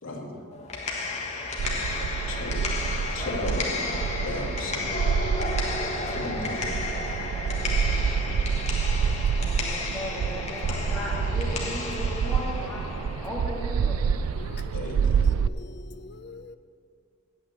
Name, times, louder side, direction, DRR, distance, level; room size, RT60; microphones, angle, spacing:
voice 1, 0.0-0.4 2.3-2.6 3.1-3.9 4.2-4.9 6.1-6.7 14.7-15.3, left 2 dB, 70° left, 2.5 m, -35 dB
sound 1, 0.5-14.5, left 3 dB, 30° left, 1.4 m, -33 dB
sound 2, 1.6-15.5, right 6 dB, 80° right, 0.3 m, -28 dB
voice 2, 8.8-9.2 14.3-16.6, left 3 dB, 50° left, 0.6 m, -45 dB
voice 3, 9.4-14.1, equal, 5° left, 1.6 m, -36 dB
8.9 x 8.8 x 8.6 m
head